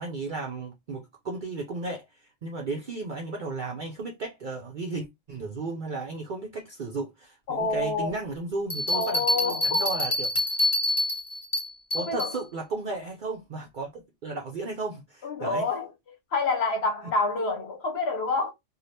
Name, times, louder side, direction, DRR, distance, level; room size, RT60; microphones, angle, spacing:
voice 1, 0.0-10.3 11.9-15.7, right 3 dB, 55° right, 0.6 m, -34 dB
voice 2, 7.5-8.2 8.9-9.8 12.1-12.4 15.2-15.9 16.3-18.5, left 3 dB, 60° left, 1.0 m, -27 dB
Bell, 8.7-12.4, left 1 dB, 25° left, 1.2 m, -27 dB
2.7 x 2.3 x 3.1 m
omnidirectional pair, 1.3 m